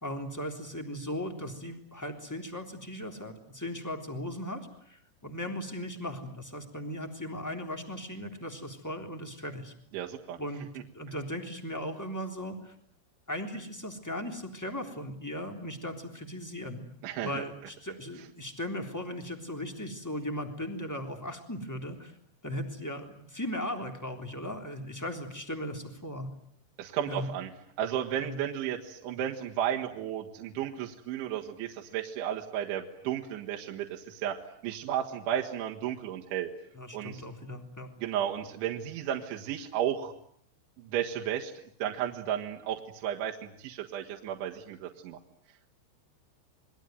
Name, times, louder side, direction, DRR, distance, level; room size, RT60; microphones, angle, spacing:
voice 1, 0.0-9.7 10.4-12.7 13.3-16.8 17.2-22.1 22.4-26.3 27.1-27.3 28.2-28.4 36.7-37.9, left 1 dB, 5° left, 4 dB, 2.4 m, -37 dB
voice 2, 9.9-10.4 17.0-17.4 26.8-27.5 27.8-34.4 34.6-36.5 36.9-37.2 38.0-40.1 40.8-41.5 41.8-45.2, right 10 dB, 75° right, 0 dB, 3.9 m, -33 dB
28.0 x 21.5 x 9.3 m, 0.67 s
omnidirectional pair, 5.6 m